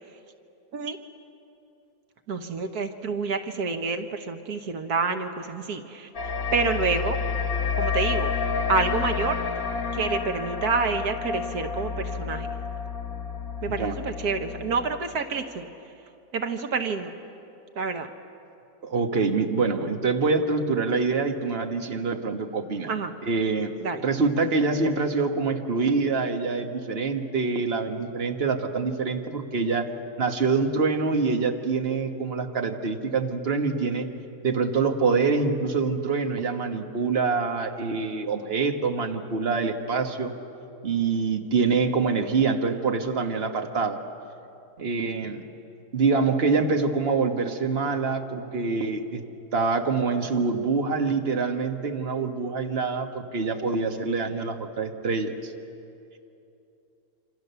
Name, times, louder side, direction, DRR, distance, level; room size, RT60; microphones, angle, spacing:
voice 1, 2.3-7.2 7.8-8.3 8.7-9.4 9.9-12.5 13.6-15.7 16.3-17.1 17.8-18.1 22.9-23.1 23.8-24.0, right 4 dB, 80° right, 6 dB, 1.7 m, -28 dB
sound 1, 6.1-15.2, left 5 dB, 65° left, 1.9 m, -29 dB
voice 2, 18.8-22.9 23.2-23.7 24.0-29.9 30.2-34.1 34.4-40.3 40.8-44.0 44.8-45.4 45.9-49.2 49.5-55.5, right 4 dB, 40° right, 4 dB, 1.6 m, -25 dB
27.0 x 26.5 x 6.9 m, 2.7 s
omnidirectional pair, 1.6 m